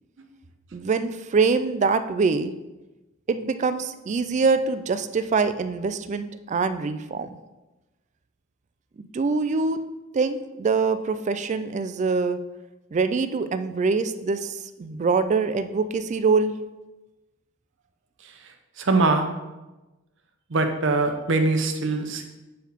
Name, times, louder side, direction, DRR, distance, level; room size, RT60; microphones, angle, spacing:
voice 1, 0.7-2.5 3.3-7.4 9.0-9.8 10.1-12.4 12.9-16.5, right 4 dB, 35° right, 11 dB, 0.3 m, -24 dB
voice 2, 18.8-19.3 20.5-22.2, right 3 dB, 65° right, 6 dB, 0.7 m, -22 dB
7.5 x 4.6 x 3.5 m, 1.1 s
head